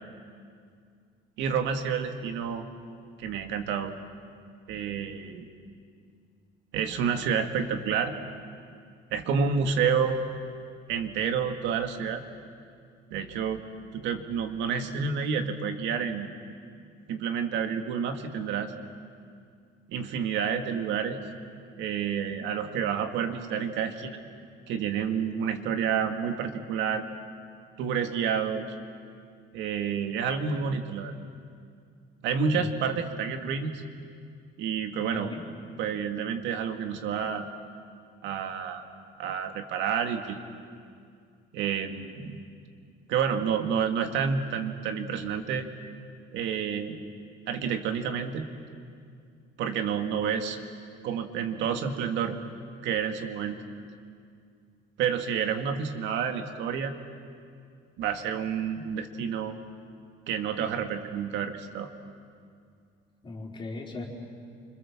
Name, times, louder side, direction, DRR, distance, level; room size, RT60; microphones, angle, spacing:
voice 1, 1.4-2.6 3.2-3.9 4.7-5.5 6.7-8.1 9.1-10.2 10.9-12.2 13.1-13.6 13.9-16.3 17.1-18.7 19.9-21.2 21.8-24.2 24.7-27.0 27.8-28.6 29.5-31.2 32.2-33.8 34.6-35.3 35.8-37.5 38.2-38.8 39.2-40.4 41.5-42.4 43.1-45.7 46.3-47.0 47.5-48.5 49.6-50.6 51.0-52.4 52.8-53.6 55.0-57.0 58.0-59.5 60.3-61.9, right 7 dB, 70° right, 5 dB, 2.1 m, -29 dB
voice 2, 35.1-35.4 63.2-64.0, left 2 dB, 25° left, -1 dB, 4.2 m, -38 dB
29.5 x 25.5 x 7.4 m, 2.3 s
cardioid pair, 150°, 20 cm